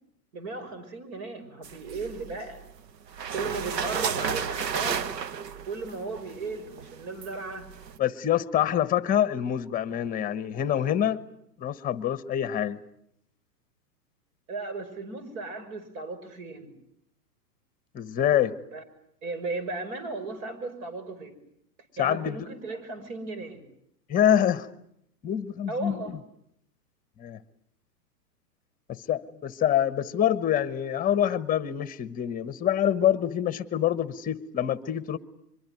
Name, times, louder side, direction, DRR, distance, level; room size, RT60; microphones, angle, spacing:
voice 1, 0.3-2.6 3.3-5.1 5.7-7.7 14.5-16.7 18.7-18.8 19.2-21.3 22.0-23.6 25.7-26.1, right 3 dB, 55° right, 6.0 m, -36 dB
sound 1, 1.6-2.7 3.1-8.0, right 7 dB, 75° right, 1.3 m, -33 dB
voice 2, 8.0-11.2 11.6-12.8 17.9-18.6 22.0-22.5 24.1-24.7 25.2-26.0 27.2-27.4 28.9-35.2, left 10 dB, 15° left, 1.1 m, -26 dB
24.0 x 23.0 x 9.3 m
hypercardioid pair, 130°, 50 cm